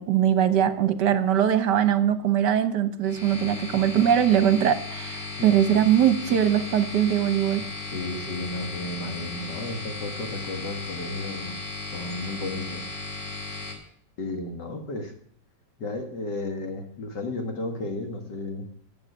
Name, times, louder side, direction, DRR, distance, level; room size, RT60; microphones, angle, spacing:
voice 1, 0.0-7.7, right 10 dB, 70° right, 11 dB, 1.6 m, -21 dB
sound 1, 3.0-13.7, left 3 dB, 50° left, 3.7 m, -36 dB
voice 2, 7.9-11.5 11.9-12.9 14.2-15.1 15.8-18.7, left 2 dB, 70° left, 4 dB, 2.2 m, -33 dB
13.0 x 7.3 x 9.0 m, 0.67 s
omnidirectional pair, 2.0 m